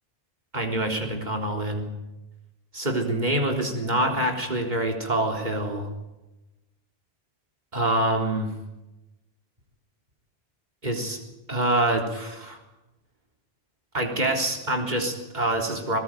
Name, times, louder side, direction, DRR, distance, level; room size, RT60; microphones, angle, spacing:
voice 1, 0.5-1.9 2.7-5.9 7.7-8.5 10.8-11.2 11.5-12.6 13.9-16.0, right 1 dB, 45° right, 1 dB, 4.0 m, -26 dB
23.0 x 19.5 x 9.2 m, 1.0 s
omnidirectional pair, 1.1 m